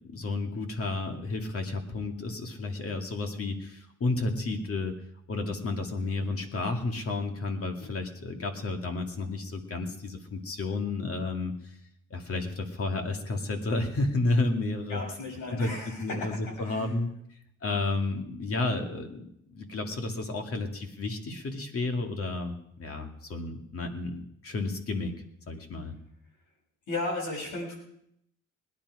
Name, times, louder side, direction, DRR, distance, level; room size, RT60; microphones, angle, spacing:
voice 1, 0.1-4.9 5.3-11.7 12.1-15.0 15.5-15.7 16.0-17.1 17.6-25.1 25.5-26.0, left 2 dB, 50° left, 4 dB, 2.4 m, -31 dB
voice 2, 14.9-16.9 26.9-27.8, left 2 dB, 80° left, -1 dB, 6.8 m, -35 dB
20.5 x 10.5 x 4.9 m, 0.77 s
cardioid pair, 90°, 30 cm